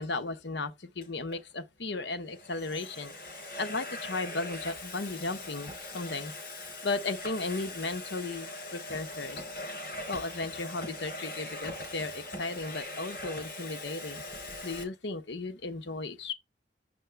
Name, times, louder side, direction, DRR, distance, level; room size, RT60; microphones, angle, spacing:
voice 1, 0.0-3.1 3.6-6.3 6.8-9.4 10.1-14.2 14.6-16.3, left 3 dB, 75° left, 1.0 m, -35 dB
Domestic sounds home sounds, 1.0-1.4 2.1-14.8, left 2 dB, 50° left, 3.7 m, -41 dB
7.7 x 5.4 x 3.3 m
head